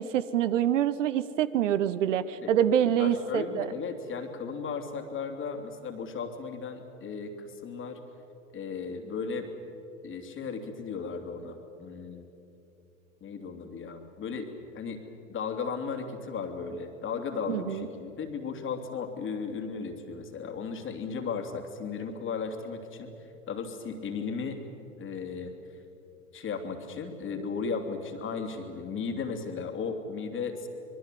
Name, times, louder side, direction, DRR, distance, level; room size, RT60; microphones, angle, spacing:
voice 1, 0.0-3.7 17.5-17.9, right 10 dB, 65° right, 14 dB, 1.1 m, -26 dB
voice 2, 2.9-8.0 8.5-9.5 10.0-12.2 13.2-14.5 14.7-15.0 15.3-23.1 23.5-24.6 25.0-25.5 26.3-30.7, left 5 dB, 30° left, 6 dB, 3.0 m, -35 dB
25.5 x 22.0 x 7.7 m, 2.9 s
figure-of-eight pair, 85°, 39 cm